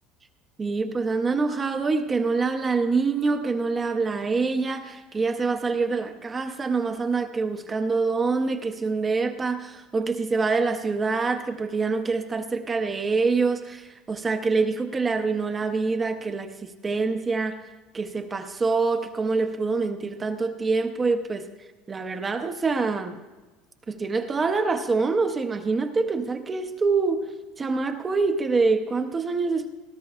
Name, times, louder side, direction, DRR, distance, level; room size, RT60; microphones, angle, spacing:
voice 1, 0.6-17.6 17.9-21.5 21.9-23.2 23.9-27.3 27.6-29.7, right 4 dB, 20° right, 6 dB, 0.6 m, -25 dB
18.0 x 12.5 x 2.4 m, 1.2 s
supercardioid pair, 135°, 0 cm